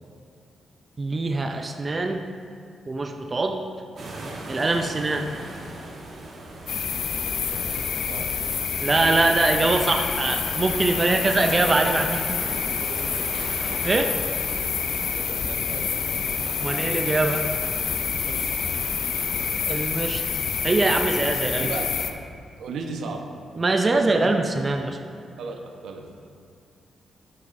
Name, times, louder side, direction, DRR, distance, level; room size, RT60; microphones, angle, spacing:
voice 1, 1.0-2.2 2.9-3.6 4.5-5.3 8.8-12.2 13.6-14.1 16.6-17.4 19.7-21.7 23.6-25.0, right 2 dB, 25° right, 4 dB, 0.4 m, -23 dB
sound 1, 3.9-19.5, right 2 dB, 50° right, 1.7 m, -39 dB
sound 2, 6.7-22.1, left 6 dB, 65° left, 0.5 m, -27 dB
voice 2, 7.5-8.3 11.1-11.3 11.8-11.9 12.5-13.3 13.7-14.2 15.1-16.3 18.2-18.5 21.5-22.1 22.6-23.3 23.9-24.4 25.4-26.0, right 4 dB, 85° right, 3 dB, 0.9 m, -37 dB
11.0 x 9.5 x 2.6 m, 2.3 s
wide cardioid pair, 155°, 0 cm